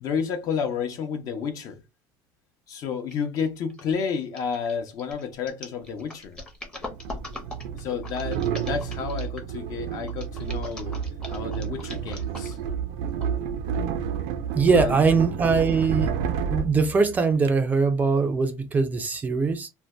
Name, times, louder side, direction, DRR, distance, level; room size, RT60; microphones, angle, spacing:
voice 1, 0.0-1.8 2.7-6.4 7.7-11.0 11.3-12.6 14.7-15.0, left 6 dB, 50° left, 0.7 m, -31 dB
sound 1, 3.1-3.4 3.7-9.5 10.1-12.7 13.2-13.3, left 2 dB, 10° left, 0.7 m, -41 dB
sound 2, 5.9-6.0 6.9-17.5, right 7 dB, 75° right, 0.5 m, -30 dB
voice 2, 14.5-16.1 16.5-19.7, right 4 dB, 20° right, 0.4 m, -22 dB
2.6 x 2.1 x 3.1 m
cardioid pair, 145°, 8 cm